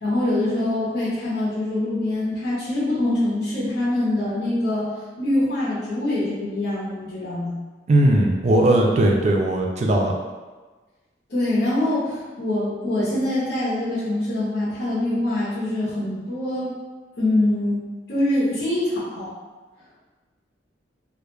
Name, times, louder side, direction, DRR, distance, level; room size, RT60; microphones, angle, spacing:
voice 1, 0.0-4.9 5.2-7.6 11.3-16.7 17.2-17.8 18.1-19.3, left 1 dB, 65° left, -10 dB, 0.7 m, -24 dB
voice 2, 7.9-10.1, right 1 dB, 40° right, 1 dB, 0.3 m, -18 dB
2.3 x 2.1 x 3.1 m, 1.3 s
head